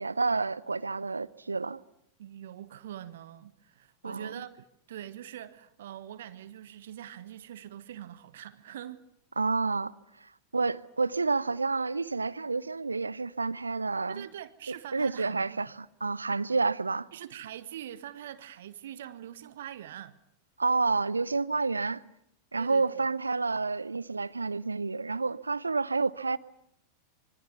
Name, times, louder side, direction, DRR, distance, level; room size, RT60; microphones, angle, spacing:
voice 1, 0.0-1.8 4.0-4.3 9.4-9.9 10.5-14.3 14.9-17.1 20.6-22.0 22.5-26.4, right 4 dB, 80° right, 0.9 m, -29 dB
voice 2, 2.2-9.0 14.1-15.6 17.1-20.2 22.6-23.0, right 11 dB, 60° right, 1.4 m, -43 dB
26.5 x 24.5 x 7.0 m
figure-of-eight pair, 90°, 0 cm